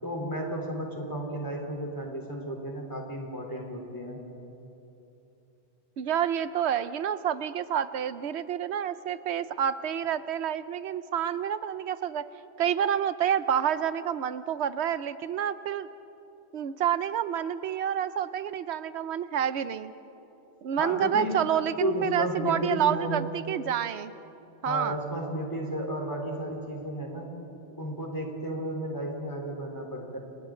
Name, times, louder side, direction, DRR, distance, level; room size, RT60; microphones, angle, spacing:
voice 1, 0.0-4.2 20.8-21.3 21.8-23.4 24.7-27.3 27.8-30.2, equal, 20° left, 0 dB, 3.5 m, -33 dB
voice 2, 6.0-12.2 12.6-15.9 16.5-19.9 20.6-24.1 24.6-25.0, right 9 dB, 85° right, 13 dB, 0.9 m, -28 dB
30.0 x 28.0 x 3.8 m, 2.9 s
omnidirectional pair, 1.1 m